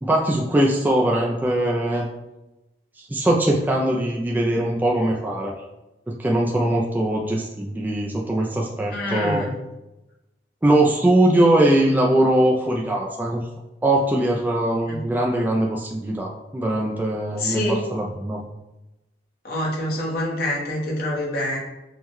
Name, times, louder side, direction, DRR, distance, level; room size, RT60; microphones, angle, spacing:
voice 1, 0.0-2.1 3.0-5.5 6.1-9.5 10.6-13.4 13.8-18.4, right 1 dB, 10° right, -2 dB, 0.3 m, -21 dB
voice 2, 8.9-9.5 14.9-15.0 17.4-17.8 19.4-21.6, left 1 dB, 60° left, -3 dB, 1.1 m, -26 dB
5.3 x 2.2 x 3.0 m, 0.97 s
head